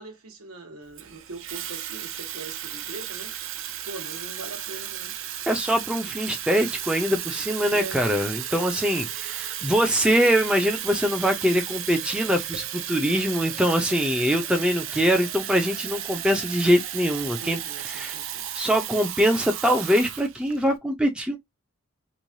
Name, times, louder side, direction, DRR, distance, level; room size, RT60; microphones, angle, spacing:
voice 1, 0.0-3.4 3.8-5.2 7.7-8.0 17.3-18.6, right 3 dB, 80° right, 1.0 m, -41 dB
Water tap faucet / Fill (with liquid), 1.0-20.7, right 11 dB, 65° right, 0.4 m, -34 dB
voice 2, 5.5-17.6 17.8-18.2 18.5-21.4, equal, 5° right, 0.4 m, -23 dB
3.0 x 2.2 x 2.6 m
head